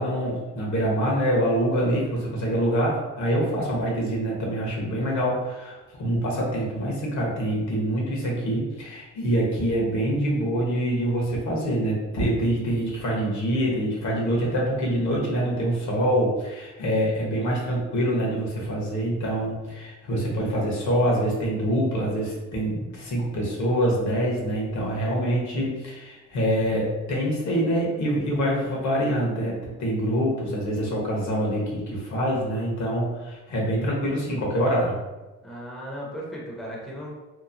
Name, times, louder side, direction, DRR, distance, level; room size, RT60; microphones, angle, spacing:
voice 1, 0.0-35.0, equal, 70° left, -3 dB, 1.1 m, -25 dB
voice 2, 35.4-37.1, equal, ahead, -4 dB, 0.6 m, -36 dB
2.9 x 2.0 x 2.5 m, 1.1 s
cardioid pair, 90°, 30 cm